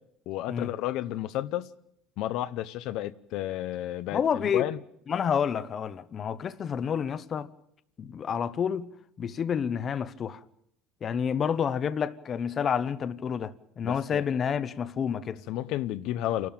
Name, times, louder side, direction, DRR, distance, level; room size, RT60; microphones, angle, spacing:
voice 1, 0.3-1.7 2.2-4.8 13.8-14.2 15.3-16.5, left 13 dB, 65° left, 0.8 m, -32 dB
voice 2, 4.1-4.7 5.1-7.5 8.0-8.9 9.2-10.4 11.0-15.4, left 7 dB, 35° left, 0.8 m, -29 dB
28.0 x 12.5 x 8.8 m
cardioid pair, 135°, 0 cm